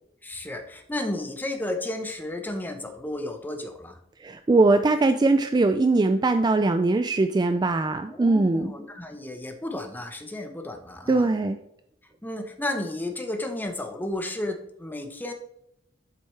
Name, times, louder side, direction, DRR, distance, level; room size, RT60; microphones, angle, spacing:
voice 1, 0.2-4.0 8.1-11.3 12.2-15.3, left 1 dB, 10° left, 5 dB, 0.9 m, -33 dB
voice 2, 4.2-8.7 11.1-11.6, right 3 dB, 20° right, 8 dB, 0.3 m, -21 dB
7.9 x 7.5 x 3.3 m, 0.79 s
head